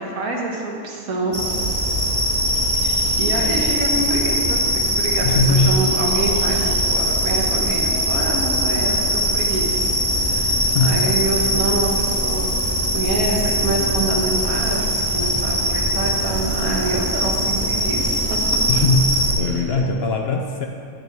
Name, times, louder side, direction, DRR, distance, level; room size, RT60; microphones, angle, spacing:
voice 1, 0.0-1.4 2.8-9.9 10.2-14.9 15.1-18.2, right 2 dB, 85° right, -1 dB, 1.8 m, -26 dB
sound 1, 1.3-19.3, equal, 10° right, 1.3 m, -21 dB
voice 2, 5.2-5.7 10.6-11.0 18.7-20.7, left 3 dB, 60° left, 3 dB, 0.7 m, -20 dB
10.5 x 8.9 x 3.5 m, 2.4 s
omnidirectional pair, 1.5 m